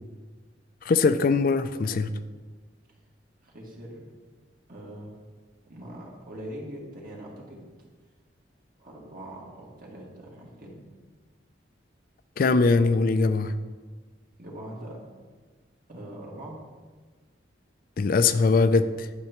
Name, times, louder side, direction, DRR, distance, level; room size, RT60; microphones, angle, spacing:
voice 1, 0.8-2.1 12.4-13.5 18.0-19.1, left 4 dB, 50° left, 11 dB, 0.4 m, -21 dB
voice 2, 3.4-4.0 4.7-5.1 5.7-7.9 8.8-10.8 14.4-15.0 15.9-16.6, right 1 dB, 50° right, -3 dB, 2.0 m, -42 dB
12.0 x 6.8 x 3.0 m, 1.4 s
head